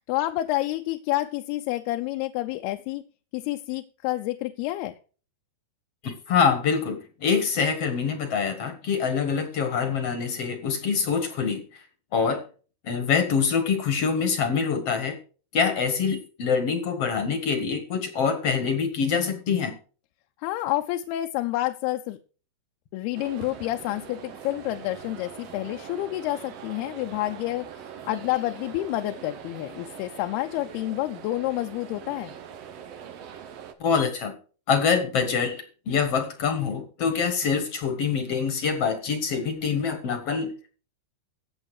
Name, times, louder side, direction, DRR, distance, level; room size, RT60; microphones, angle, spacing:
voice 1, 0.1-3.0 3.3-4.9 20.4-22.2 22.9-32.4, left 16 dB, 80° left, 5 dB, 2.6 m, -29 dB
voice 2, 6.0-11.6 12.1-12.4 12.8-15.2 15.5-19.7 33.8-34.3 34.7-40.5, left 6 dB, 55° left, 8 dB, 1.8 m, -25 dB
sound 1, 23.1-33.7, right 8 dB, 80° right, 1.4 m, -42 dB
15.5 x 8.2 x 4.9 m, 0.38 s
omnidirectional pair, 4.6 m